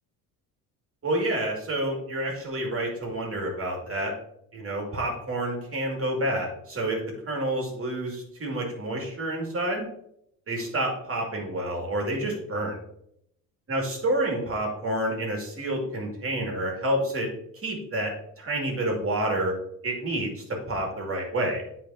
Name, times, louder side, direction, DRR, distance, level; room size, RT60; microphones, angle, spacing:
voice 1, 1.0-4.1 4.5-9.9 10.5-12.8 13.7-17.3 17.6-19.5 19.8-21.6, right 1 dB, 35° right, 0 dB, 2.3 m, -29 dB
8.8 x 4.6 x 2.8 m, 0.74 s
supercardioid pair, 80°, 40 cm